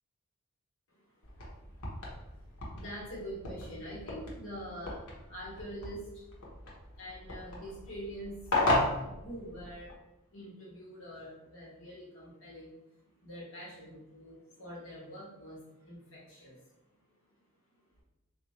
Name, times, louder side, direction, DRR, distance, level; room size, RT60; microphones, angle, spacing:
voice 1, 0.9-2.2 2.7-6.6 6.9-8.5 9.0-9.9 10.3-12.7 13.2-16.7 17.1-17.3, equal, 65° left, -6 dB, 1.3 m, -45 dB
sound 1, 1.2-9.9, left 2 dB, 80° left, 1.0 m, -36 dB
3.6 x 2.6 x 3.1 m, 0.96 s
head